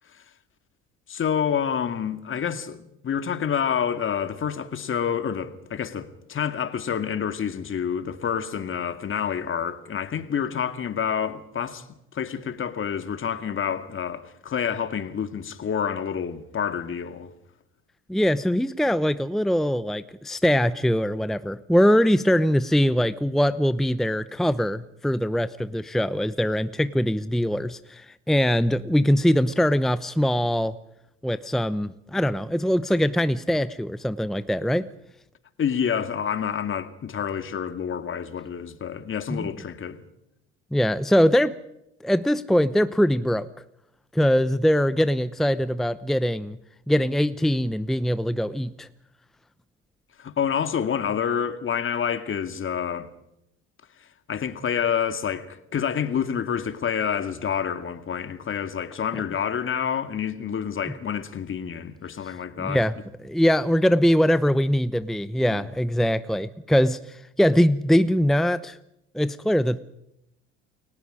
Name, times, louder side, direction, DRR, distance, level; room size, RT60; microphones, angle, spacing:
voice 1, 1.1-11.8 12.1-17.3 35.6-40.0 50.2-53.1 54.3-62.8 65.6-65.7, left 8 dB, 40° left, 2.2 m, -28 dB
voice 2, 18.1-30.7 31.2-34.9 39.3-39.5 40.7-41.6 42.0-43.5 44.1-46.6 46.9-48.9 62.2-62.9 63.2-68.8 69.1-69.8, equal, ahead, 0.8 m, -22 dB
30.0 x 22.0 x 5.1 m
hypercardioid pair, 65°, 33 cm